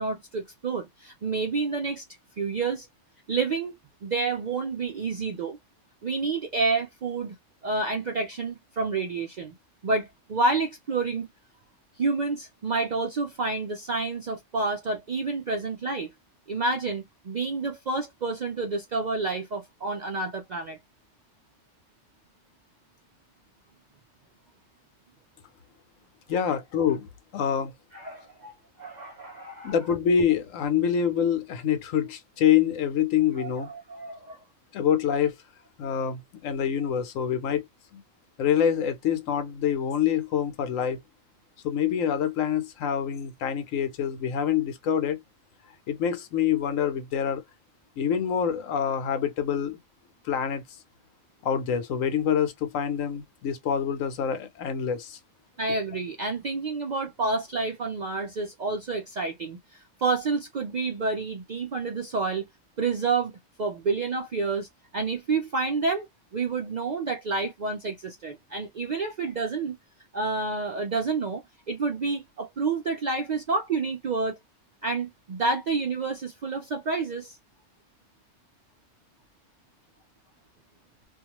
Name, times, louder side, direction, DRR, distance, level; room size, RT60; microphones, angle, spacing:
voice 1, 0.0-2.0 2.4-2.9 3.3-3.7 4.0-5.6 6.0-7.3 7.6-9.5 9.8-11.3 12.0-16.1 16.5-20.8 26.4-26.6 27.9-28.5 28.8-29.8 33.4-34.4 55.6-62.4 62.8-64.7 64.9-66.1 66.3-69.8 70.1-74.4 74.8-77.4, right 3 dB, 65° right, 0.4 m, -29 dB
voice 2, 26.3-27.1 27.3-27.7 29.6-33.7 34.7-35.3 35.8-37.6 37.9-38.0 38.4-41.0 41.6-45.2 45.9-47.4 48.0-49.8 50.3-50.6 51.4-55.2, left 8 dB, 85° left, 1.1 m, -26 dB
2.5 x 2.3 x 2.8 m
omnidirectional pair, 1.3 m